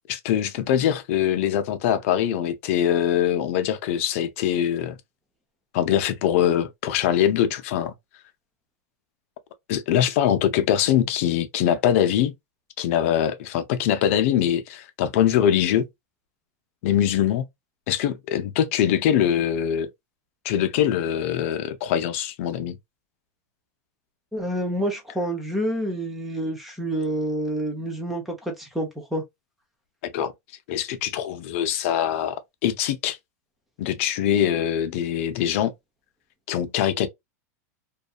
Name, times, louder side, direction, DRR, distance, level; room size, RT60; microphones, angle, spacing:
voice 1, 0.1-5.0 5.7-7.9 9.7-12.3 12.8-15.9 16.8-17.4 17.9-19.9 20.4-22.8 30.0-30.3 30.7-33.2 33.8-35.7 36.5-37.1, left 10 dB, 50° left, 0.5 m, -23 dB
voice 2, 24.3-29.2, right 1 dB, ahead, 0.7 m, -28 dB
2.6 x 2.3 x 2.4 m
supercardioid pair, 165°, 9 cm